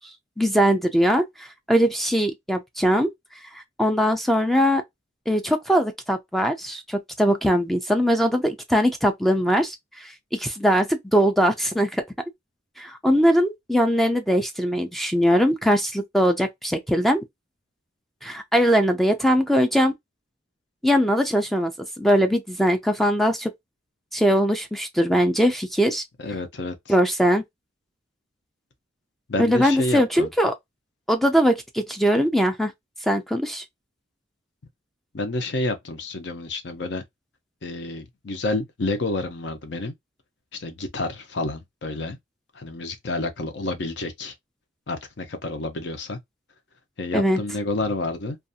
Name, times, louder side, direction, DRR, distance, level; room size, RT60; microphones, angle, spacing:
voice 1, 0.4-3.1 3.5-4.8 5.3-12.0 12.8-17.2 18.2-19.9 20.8-21.7 22.0-23.5 24.1-26.0 26.9-27.4 29.4-30.5 31.1-32.7 33.0-33.6 47.1-47.4, equal, ahead, 0.3 m, -21 dB
voice 2, 26.2-26.8 29.3-30.3 35.1-37.0 37.6-39.9 40.5-42.2 42.5-44.3 44.9-46.2 47.0-48.4, left 2 dB, 65° left, 0.7 m, -29 dB
2.5 x 2.3 x 2.6 m
head